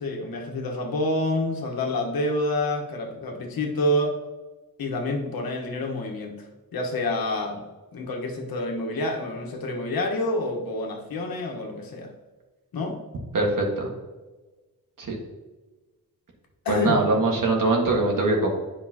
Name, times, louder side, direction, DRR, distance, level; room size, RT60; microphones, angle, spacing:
voice 1, 0.0-4.2 4.8-6.5 6.7-7.6 7.9-12.1 12.7-13.0 16.6-17.0, left 1 dB, 75° left, 1 dB, 1.4 m, -27 dB
voice 2, 13.3-13.9 15.0-15.2 16.7-18.5, right 2 dB, 60° right, -1 dB, 1.7 m, -22 dB
9.9 x 5.3 x 2.9 m, 1.2 s
wide cardioid pair, 135°, 36 cm